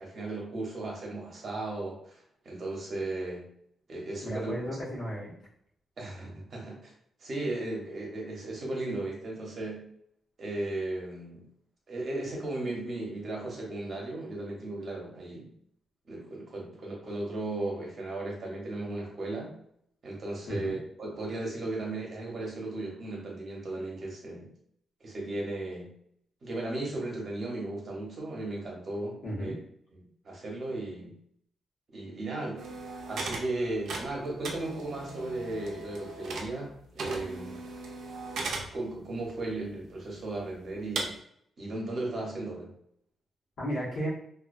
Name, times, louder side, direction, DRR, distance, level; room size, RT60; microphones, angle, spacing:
voice 1, 0.0-3.5 3.9-4.5 6.0-6.9 7.2-9.8 10.4-11.5 11.9-15.5 16.1-19.5 20.0-24.5 25.0-25.9 26.4-29.5 29.9-31.1 31.9-32.6 33.1-37.6 38.7-41.1 41.6-42.7, right 2 dB, 45° right, -2 dB, 0.7 m, -36 dB
voice 2, 4.2-5.4 20.5-20.8 29.2-29.6 43.6-44.1, equal, 70° left, -7 dB, 1.0 m, -34 dB
sound 1, 32.6-33.5 33.7-36.7 37.0-38.7 39.3-39.4 40.0-40.1 41.0-41.1, right 3 dB, 75° right, 0.4 m, -37 dB
2.3 x 2.2 x 2.4 m, 0.68 s
wide cardioid pair, 140°, 0 cm